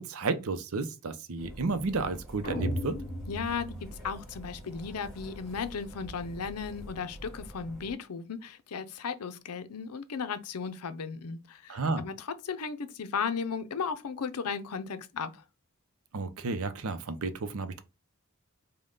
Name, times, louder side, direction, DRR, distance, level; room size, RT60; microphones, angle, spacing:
voice 1, 0.0-3.0 11.7-12.0 16.1-17.8, right 3 dB, 70° right, 0.6 m, -32 dB
sound 1, 1.4-7.9, equal, ahead, 2.5 m, -46 dB
sound 2, 2.4-4.6, equal, 35° left, 2.4 m, -36 dB
voice 2, 3.3-15.4, left 5 dB, 90° left, 0.6 m, -35 dB
5.3 x 2.3 x 3.7 m
head